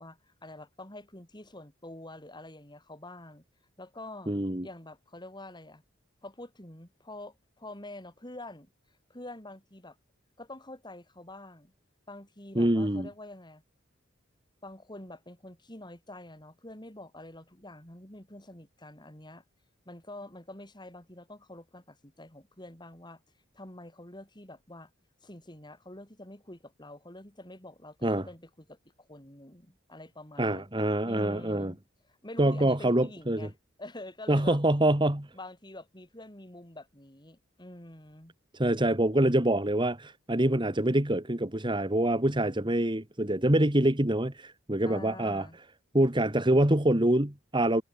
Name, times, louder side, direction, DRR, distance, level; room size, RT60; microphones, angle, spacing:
voice 1, 0.0-3.4 3.8-4.3 4.6-5.8 6.2-8.7 9.1-10.0 10.4-11.7 12.1-13.6 14.6-19.4 19.8-23.2 23.5-24.9 25.2-30.7 31.0-31.8 32.1-34.6 35.3-38.3 44.8-45.6, left 1 dB, 20° left, 5.0 m, -46 dB
voice 2, 4.3-4.7 12.6-13.1 28.0-28.3 30.4-31.7 32.4-33.5 34.3-35.3 38.5-45.5 45.9-47.8, right 1 dB, 25° right, 1.9 m, -25 dB
head